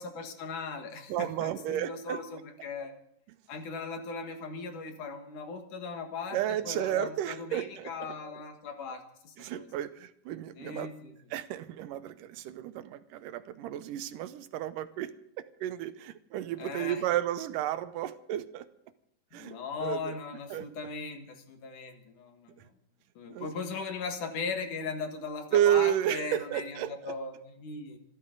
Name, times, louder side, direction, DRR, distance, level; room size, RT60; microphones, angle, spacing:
voice 1, 0.0-3.0 3.5-9.7 10.6-11.1 16.6-17.0 19.3-22.7 23.2-28.0, left 4 dB, 70° left, 5 dB, 3.1 m, -38 dB
voice 2, 1.1-2.2 6.3-8.1 9.4-10.9 11.3-18.7 19.3-20.2 20.5-20.7 23.3-23.5 25.5-27.2, right 11 dB, 80° right, 12 dB, 2.3 m, -32 dB
26.5 x 13.0 x 3.9 m, 0.73 s
omnidirectional pair, 3.8 m